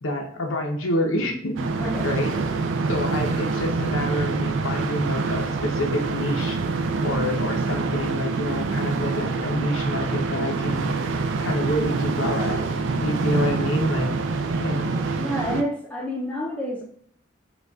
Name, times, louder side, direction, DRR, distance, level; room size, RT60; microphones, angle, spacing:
voice 1, 0.0-1.6 2.0-2.3 2.9-6.6 7.0-10.9 11.4-14.1 14.6-14.9, left 1 dB, 75° left, 1 dB, 0.7 m, -27 dB
sound 1, 1.6-15.6, right 4 dB, 65° right, 0.3 m, -26 dB
voice 2, 1.7-2.1 13.9-14.2 15.2-16.8, equal, 5° left, -2 dB, 0.5 m, -29 dB
5.1 x 2.3 x 2.3 m, 0.62 s
head